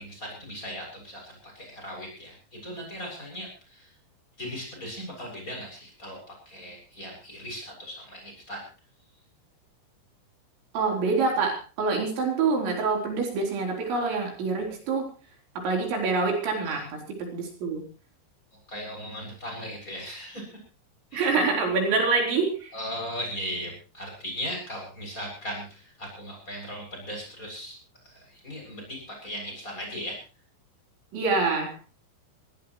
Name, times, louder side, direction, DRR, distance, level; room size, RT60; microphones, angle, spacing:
voice 1, 0.0-3.9 4.4-6.2 6.5-8.6 16.6-16.8 18.7-20.5 21.1-21.3 22.7-27.8 28.0-30.2, equal, 15° left, 0 dB, 7.7 m, -38 dB
voice 2, 10.7-15.0 15.6-17.8 21.1-22.7 31.1-31.7, right 4 dB, 75° right, 1 dB, 6.3 m, -26 dB
22.5 x 17.5 x 3.2 m, 0.35 s
omnidirectional pair, 5.3 m